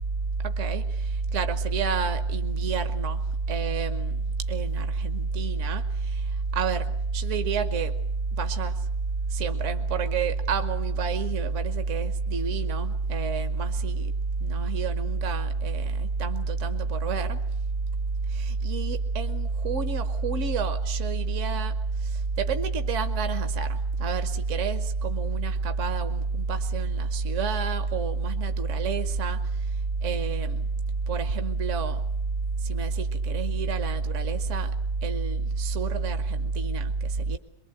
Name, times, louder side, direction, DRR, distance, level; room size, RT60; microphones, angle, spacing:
voice 1, 0.4-3.2 3.5-7.9 8.3-8.8 9.3-14.1 14.4-17.4 18.3-29.6 30.0-30.7 31.1-32.0 32.6-34.7 35.0-37.4, right 4 dB, 55° right, 8 dB, 1.4 m, -27 dB
23.5 x 22.5 x 7.9 m, 0.75 s
omnidirectional pair, 1.6 m